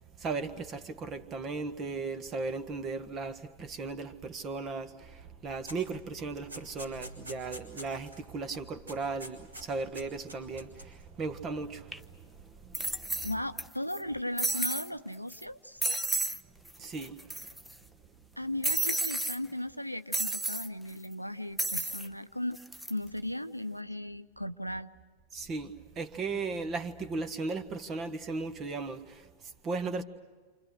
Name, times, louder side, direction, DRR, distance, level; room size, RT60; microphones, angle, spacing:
voice 1, 0.2-13.3 16.8-17.3 25.3-30.0, right 4 dB, 30° right, 1.6 m, -37 dB
sound 1, 5.7-5.9 6.2-8.2 8.5-8.6 8.9-9.6 9.9-11.0, equal, 80° right, 5.8 m, -46 dB
sound 2, 11.9-12.0 12.7-13.6 13.9-14.0 14.4-14.9 15.3-15.4 15.8-16.4 16.7-16.8 17.0-17.7 18.6-19.4 20.1-20.7 21.6-22.1 22.5-22.9, right 2 dB, 5° right, 0.9 m, -31 dB
voice 2, 13.2-15.8 18.4-22.6 22.9-24.9, left 1 dB, 90° left, 0.7 m, -36 dB
28.5 x 28.5 x 6.5 m
figure-of-eight pair, 90°, 0 cm